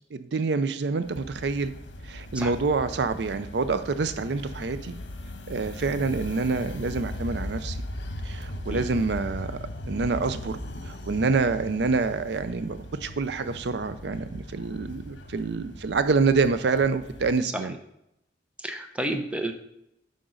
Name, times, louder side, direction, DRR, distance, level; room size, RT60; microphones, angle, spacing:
voice 1, 0.1-1.7 2.0-5.0 5.5-7.8 8.2-9.6 9.9-10.6 10.8-17.7, right 4 dB, 70° right, 11 dB, 0.5 m, -27 dB
sound 1, 1.0-17.4, left 1 dB, 80° left, 1.1 m, -38 dB
voice 2, 18.6-19.5, right 1 dB, 5° right, 5 dB, 0.6 m, -31 dB
8.6 x 5.3 x 3.8 m, 0.81 s
head